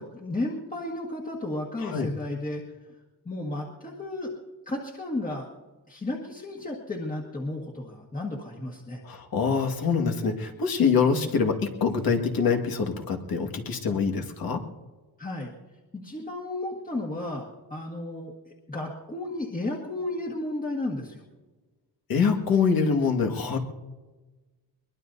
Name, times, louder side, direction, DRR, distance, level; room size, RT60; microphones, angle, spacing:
voice 1, 0.0-2.6 3.2-4.3 4.6-5.5 5.9-9.0 15.2-15.5 15.9-21.2, left 2 dB, 20° left, -2 dB, 1.7 m, -33 dB
voice 2, 9.1-14.6 22.1-23.6, left 5 dB, 65° left, 2 dB, 1.8 m, -25 dB
22.5 x 21.5 x 2.7 m, 1.2 s
cardioid pair, 135°, 39 cm